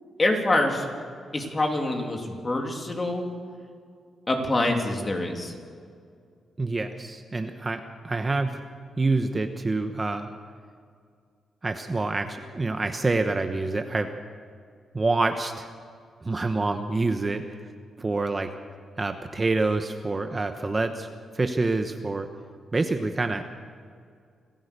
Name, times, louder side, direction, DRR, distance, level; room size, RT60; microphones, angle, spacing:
voice 1, 0.2-0.9 1.3-3.3 4.3-5.5, left 2 dB, 25° left, 2 dB, 3.1 m, -25 dB
voice 2, 6.6-8.6 9.0-10.3 11.6-14.1 14.9-15.7 16.2-17.6 18.0-18.5 19.0-21.1 21.3-22.3 22.7-23.4, right 3 dB, 25° right, 7 dB, 1.0 m, -27 dB
27.0 x 14.5 x 6.8 m, 2.2 s
cardioid pair, 115°, 0 cm